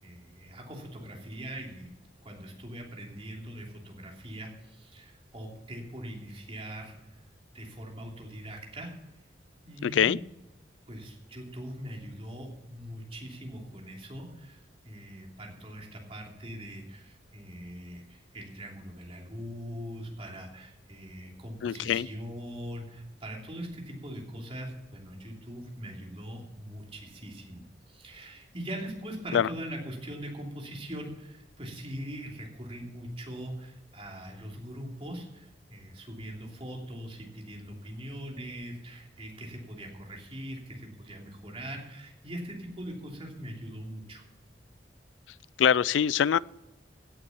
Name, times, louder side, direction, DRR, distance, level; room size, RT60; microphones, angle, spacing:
voice 1, 0.0-1.9 2.2-6.9 7.5-8.9 9.6-10.1 10.9-44.2, equal, 30° right, -1 dB, 3.0 m, -41 dB
voice 2, 9.8-10.2 21.6-22.1 29.3-29.5 45.6-46.4, left 8 dB, 90° left, 22 dB, 0.3 m, -23 dB
16.5 x 7.0 x 7.0 m, 0.98 s
head